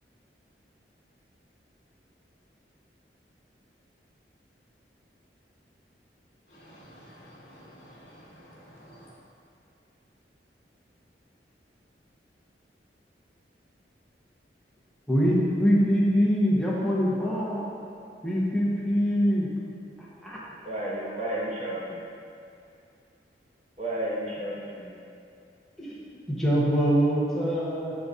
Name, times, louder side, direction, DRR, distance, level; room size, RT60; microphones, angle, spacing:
voice 1, 6.5-9.1, equal, 50° left, -10 dB, 1.2 m, -51 dB
voice 2, 15.1-17.6 18.2-19.5 20.0-20.4 25.8-28.0, equal, ahead, -7 dB, 0.9 m, -24 dB
voice 3, 20.6-22.0 23.8-24.9, right 1 dB, 35° right, -5 dB, 0.9 m, -32 dB
6.9 x 3.9 x 3.6 m, 2.5 s
head